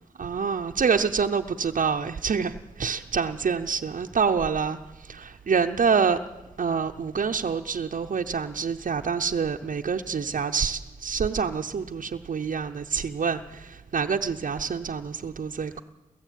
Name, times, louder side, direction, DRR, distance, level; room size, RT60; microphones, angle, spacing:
voice 1, 0.2-2.5 2.8-4.8 5.1-6.2 6.6-15.8, right 6 dB, 70° right, 4 dB, 0.8 m, -26 dB
28.5 x 14.5 x 9.2 m, 1.1 s
wide cardioid pair, 105°, 14 cm